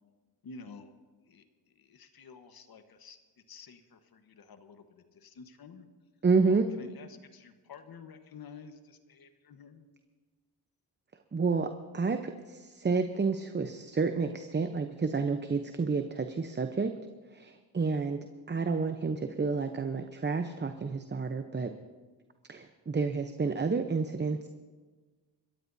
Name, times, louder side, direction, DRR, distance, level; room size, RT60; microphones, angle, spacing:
voice 1, 0.4-0.9 1.3-1.4 1.7-3.2 3.5-5.9 6.5-9.8, left 5 dB, 60° left, 8 dB, 1.4 m, -51 dB
voice 2, 6.2-6.7 11.3-16.9 17.3-21.7 22.5-24.5, right 4 dB, 25° right, 7 dB, 0.8 m, -30 dB
26.0 x 13.5 x 2.7 m, 1.4 s
cardioid pair, 65°, 42 cm